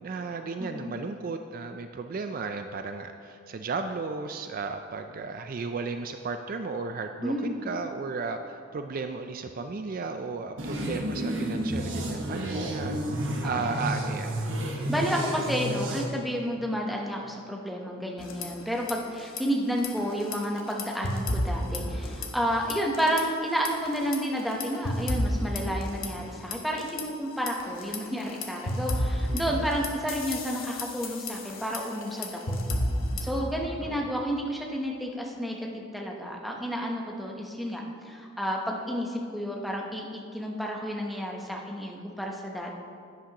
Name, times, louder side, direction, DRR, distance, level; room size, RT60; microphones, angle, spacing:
voice 1, 0.0-14.3 29.3-29.7 33.9-34.1, right 4 dB, 45° right, 7 dB, 0.3 m, -34 dB
voice 2, 0.6-0.9 7.2-7.6 13.4-13.8 14.9-32.6 33.2-42.7, equal, ahead, -1 dB, 0.9 m, -31 dB
sound 1, 10.6-16.0, right 1 dB, 70° right, 1.3 m, -31 dB
sound 2, 18.2-18.9 19.2-19.4 19.8-22.4 22.7-23.2 23.6-27.0 27.5-33.4, left 1 dB, 80° left, 1.1 m, -31 dB
11.0 x 9.9 x 2.9 m, 2.4 s
head